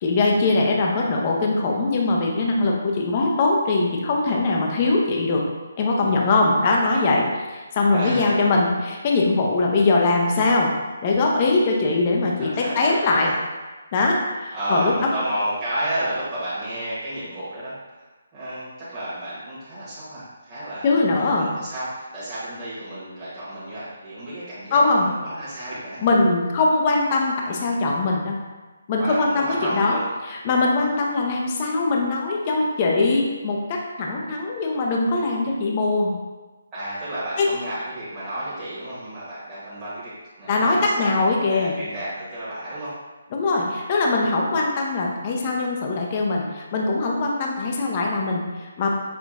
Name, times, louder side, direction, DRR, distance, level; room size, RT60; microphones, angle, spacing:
voice 1, 0.0-5.4 5.8-10.7 11.0-13.3 13.9-15.1 20.8-21.5 24.7-25.1 26.0-28.4 28.9-30.0 30.3-36.1 37.4-37.5 40.5-41.8 43.3-48.9, left 3 dB, 30° left, -1 dB, 0.5 m, -21 dB
voice 2, 7.9-8.4 12.4-13.3 14.5-18.0 18.3-26.0 29.0-30.0 36.7-40.1 40.4-42.9, right 1 dB, 15° right, -13 dB, 1.2 m, -31 dB
5.6 x 2.4 x 2.4 m, 1.2 s
hypercardioid pair, 155°, 0 cm